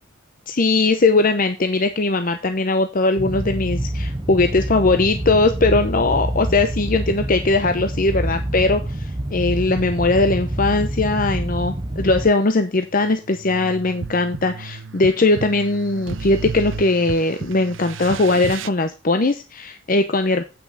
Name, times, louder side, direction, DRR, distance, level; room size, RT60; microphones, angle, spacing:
voice 1, 0.5-20.4, left 3 dB, 45° left, 8 dB, 0.7 m, -19 dB
sound 1, 3.2-12.3, right 1 dB, 25° right, 0.7 m, -26 dB
sound 2, 12.9-18.7, right 4 dB, 65° right, 0.6 m, -33 dB
8.6 x 5.9 x 5.7 m, 0.29 s
head